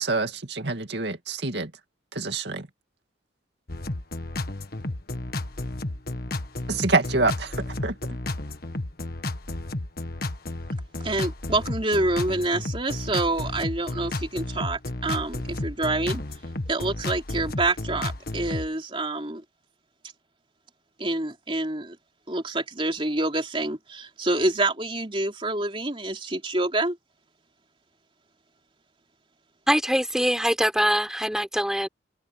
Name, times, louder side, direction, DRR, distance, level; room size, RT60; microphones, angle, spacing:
voice 1, 0.0-1.7 2.1-2.7 6.7-8.2, right 3 dB, 60° right, 2.4 m, -26 dB
sound 1, 3.7-18.7, left 2 dB, 50° left, 1.7 m, -32 dB
voice 2, 11.0-16.2 16.7-19.4 21.0-22.0 22.3-27.0, right 2 dB, 30° right, 3.2 m, -27 dB
voice 3, 29.7-31.9, equal, 5° right, 4.2 m, -23 dB
head